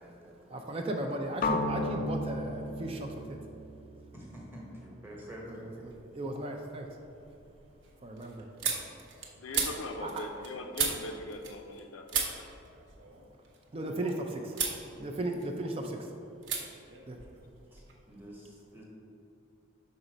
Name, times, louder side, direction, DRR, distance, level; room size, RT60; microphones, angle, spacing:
voice 1, 0.0-0.5 4.1-5.7 17.7-18.8, equal, 10° right, -4 dB, 1.0 m, -48 dB
voice 2, 0.5-3.4 5.5-7.0 8.0-8.5 10.0-10.1 13.7-14.6 14.9-16.1 17.1-17.2, right 1 dB, 30° right, 2 dB, 0.4 m, -36 dB
sound 1, 1.4-5.4, left 2 dB, 40° left, 0.3 m, -35 dB
sound 2, 5.9-6.4 6.8-11.8 12.1-14.1 14.5-14.8 15.2-15.9 16.4-16.6 16.9-17.9, right 6 dB, 65° right, 0.8 m, -36 dB
voice 3, 9.4-12.5, left 1 dB, 85° left, 4 dB, 0.6 m, -40 dB
5.4 x 4.0 x 5.0 m, 2.7 s
head